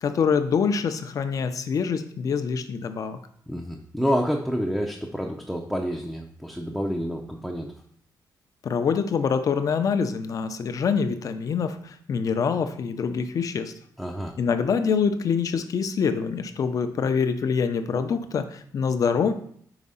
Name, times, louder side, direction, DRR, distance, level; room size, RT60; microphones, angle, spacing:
voice 1, 0.0-3.2 8.6-13.7 14.4-19.3, left 6 dB, 50° left, 9 dB, 0.6 m, -25 dB
voice 2, 3.5-7.7 14.0-14.3, equal, ahead, 1 dB, 0.5 m, -28 dB
5.1 x 4.9 x 5.5 m, 0.63 s
wide cardioid pair, 155°, 7 cm